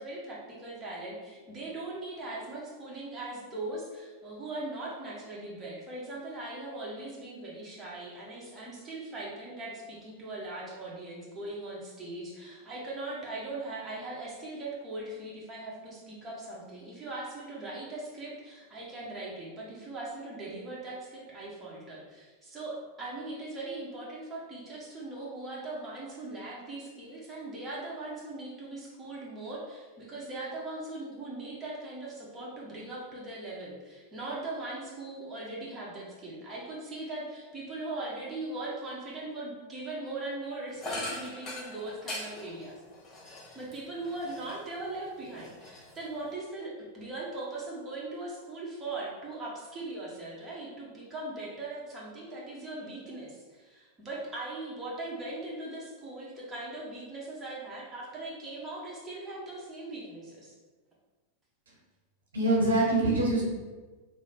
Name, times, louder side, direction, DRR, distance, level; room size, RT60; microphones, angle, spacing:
voice 1, 0.0-42.7 43.5-60.5, right 2 dB, 20° right, -6 dB, 0.9 m, -40 dB
sound 1, 40.8-44.8 45.2-46.3, left 1 dB, 25° left, 1.0 m, -41 dB
voice 2, 62.3-63.4, right 2 dB, 70° right, -4 dB, 0.9 m, -24 dB
3.1 x 2.0 x 4.0 m, 1.3 s
figure-of-eight pair, 90°, 0 cm